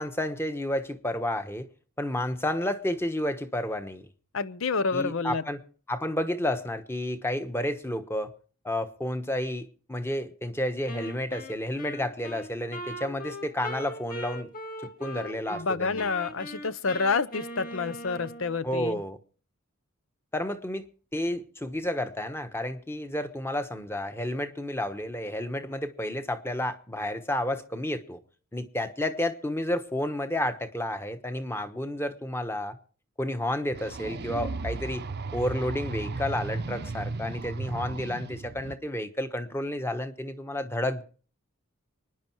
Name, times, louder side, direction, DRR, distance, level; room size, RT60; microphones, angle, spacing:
voice 1, 0.0-1.7 2.0-4.1 4.9-5.6 5.9-8.3 8.6-14.5 15.0-16.1 18.6-19.2 20.3-20.9 21.1-28.2 28.5-32.8 33.2-35.1 35.3-41.0, left 1 dB, 10° left, 1.1 m, -31 dB
voice 2, 4.3-5.4 15.5-19.0, left 4 dB, 70° left, 0.7 m, -28 dB
Wind instrument woodwind instrument, 10.9-15.7 16.0-18.6, equal, 45° left, 2.2 m, -40 dB
sound 1, 33.7-38.7, right 3 dB, 50° right, 0.7 m, -35 dB
25.0 x 10.0 x 4.6 m
head